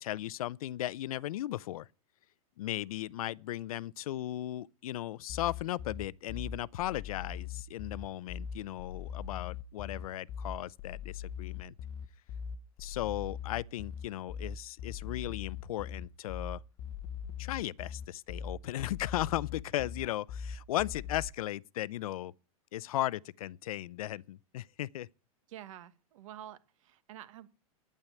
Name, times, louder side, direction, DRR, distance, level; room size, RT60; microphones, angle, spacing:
voice 1, 0.0-1.9 2.6-11.7 12.8-16.6 17.4-22.3 22.7-25.1, left 14 dB, 80° left, 0.5 m, -36 dB
sound 1, 5.3-21.3, left 7 dB, 30° left, 0.7 m, -41 dB
voice 2, 25.5-27.5, right 11 dB, 65° right, 1.4 m, -48 dB
9.6 x 9.0 x 9.1 m
supercardioid pair, 150°, 18 cm